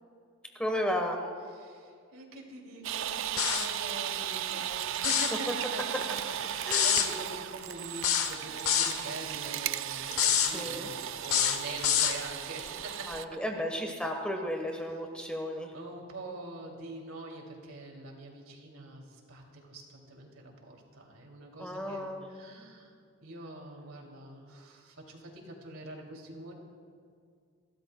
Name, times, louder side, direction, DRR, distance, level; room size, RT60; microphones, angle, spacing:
voice 1, 0.6-1.2 6.7-6.9 10.5-10.9 13.1-15.7 21.6-22.2, equal, 5° left, 3 dB, 1.0 m, -33 dB
voice 2, 1.5-13.6 15.7-22.9 23.2-26.5, right 2 dB, 80° right, 1 dB, 2.5 m, -44 dB
sound 1, 2.8-13.3, right 11 dB, 65° right, 0.4 m, -36 dB
sound 2, 3.4-3.7 4.9-5.4 6.7-7.1 8.0-9.0 10.1-10.5 11.2-12.2, left 9 dB, 85° left, 1.0 m, -26 dB
29.0 x 13.0 x 2.2 m, 2.2 s
head